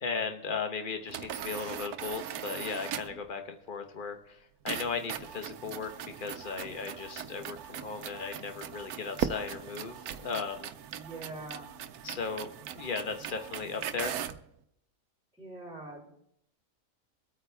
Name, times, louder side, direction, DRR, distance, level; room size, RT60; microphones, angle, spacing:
voice 1, 0.0-5.9 6.2-10.7 12.0-14.2, left 5 dB, 35° left, 6 dB, 1.2 m, -36 dB
sound 1, 1.1-3.2 4.7-14.5, right 10 dB, 85° right, 1.2 m, -41 dB
Fireworks, 9.2-11.5, right 9 dB, 70° right, 1.0 m, -37 dB
voice 2, 10.9-11.7 15.4-16.2, right 2 dB, ahead, -10 dB, 4.2 m, -44 dB
22.5 x 8.8 x 3.4 m, 0.75 s
omnidirectional pair, 1.5 m